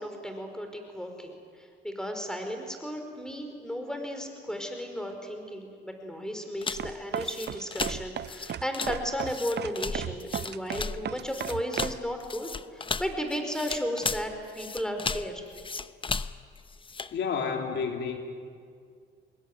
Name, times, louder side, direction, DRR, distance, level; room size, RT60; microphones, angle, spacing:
voice 1, 0.0-15.4, equal, 5° left, 5 dB, 4.9 m, -34 dB
sound 1, 6.6-17.2, left 4 dB, 25° left, 0.8 m, -35 dB
sound 2, 6.8-12.0, right 9 dB, 55° right, 0.8 m, -34 dB
voice 2, 17.1-18.2, left 6 dB, 70° left, 3 dB, 3.1 m, -30 dB
25.5 x 20.5 x 9.7 m, 2.1 s
cardioid pair, 90°, 20 cm